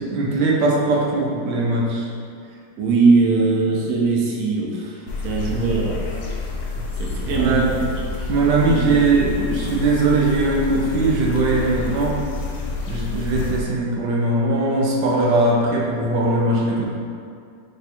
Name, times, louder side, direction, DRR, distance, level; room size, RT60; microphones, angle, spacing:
voice 1, 0.0-2.1 5.5-6.0 7.3-7.9 8.3-12.2 12.9-16.8, right 2 dB, 70° right, -3 dB, 1.1 m, -20 dB
voice 2, 2.8-4.9 5.2-6.0 7.0-7.6 8.7-8.9, right 4 dB, 90° right, -2 dB, 0.8 m, -20 dB
sound 1, 5.1-13.6, left 3 dB, 85° left, 1.4 m, -28 dB
3.5 x 2.2 x 4.2 m, 2.3 s
omnidirectional pair, 2.3 m